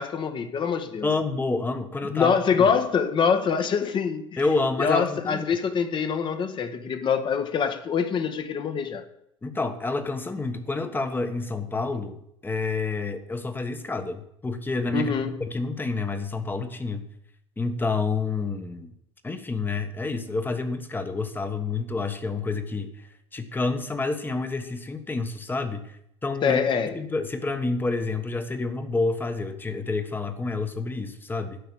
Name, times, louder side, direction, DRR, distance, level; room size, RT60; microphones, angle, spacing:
voice 1, 0.0-1.1 2.1-4.2 4.8-9.0 14.9-15.4 26.4-26.9, left 6 dB, 30° left, 1.4 m, -24 dB
voice 2, 1.0-2.7 4.4-5.5 9.4-17.1 17.6-18.9 19.2-23.1 23.3-26.0 26.2-26.6 26.9-31.6, left 3 dB, 15° left, 1.4 m, -28 dB
11.5 x 5.7 x 7.9 m
figure-of-eight pair, 80°, 16 cm